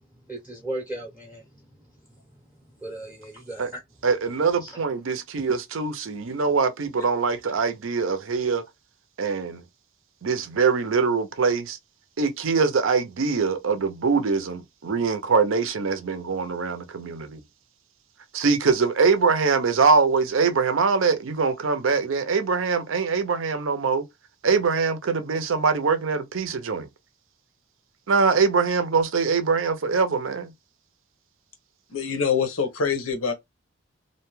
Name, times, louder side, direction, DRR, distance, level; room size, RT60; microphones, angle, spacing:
voice 1, 0.3-1.4 2.8-3.6 4.6-4.7, right 1 dB, 5° right, 0.6 m, -35 dB
voice 2, 4.0-8.6 9.2-9.6 10.2-11.8 12.2-17.4 18.3-24.0 24.4-26.9 28.1-30.5, right 5 dB, 75° right, 0.6 m, -23 dB
voice 3, 31.9-33.3, left 6 dB, 90° left, 0.8 m, -25 dB
2.6 x 2.2 x 3.0 m
head